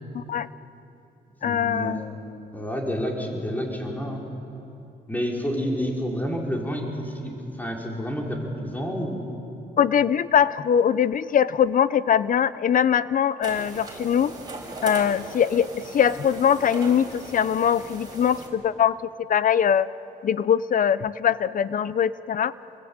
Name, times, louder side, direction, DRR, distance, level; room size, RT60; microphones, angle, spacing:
voice 1, 0.1-0.5 1.4-2.0 9.8-14.3 14.8-19.0 19.3-19.9 20.2-22.5, left 8 dB, 55° left, 16 dB, 0.8 m, -22 dB
voice 2, 1.4-2.0 2.5-4.2 5.1-9.3, equal, 10° left, -1 dB, 5.2 m, -29 dB
sound 1, 13.4-18.5, right 2 dB, 25° right, 7.0 m, -38 dB
30.0 x 21.0 x 9.0 m, 2.9 s
cardioid pair, 80°, 17 cm